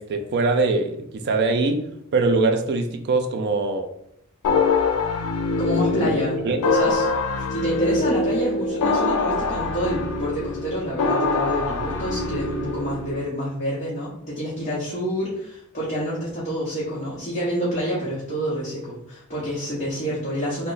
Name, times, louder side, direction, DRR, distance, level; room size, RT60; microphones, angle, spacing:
voice 1, 0.0-1.8 2.1-3.9 6.0-6.1 6.4-6.6, right 3 dB, 50° right, 6 dB, 0.4 m, -22 dB
sound 1, 4.4-13.2, left 3 dB, 85° left, 0.4 m, -24 dB
voice 2, 5.6-6.4 6.6-7.1 7.5-20.7, equal, 30° left, -8 dB, 0.8 m, -28 dB
3.0 x 2.1 x 3.9 m, 0.76 s
head